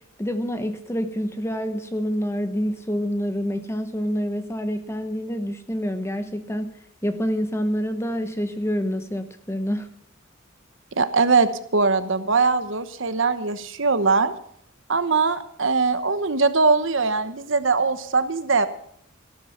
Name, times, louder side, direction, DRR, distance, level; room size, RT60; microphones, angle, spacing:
voice 1, 0.2-6.7 7.0-9.9, equal, 10° left, 9 dB, 1.0 m, -27 dB
voice 2, 11.0-14.3 14.9-18.7, right 4 dB, 65° right, 12 dB, 1.1 m, -21 dB
14.0 x 12.5 x 5.7 m, 0.68 s
head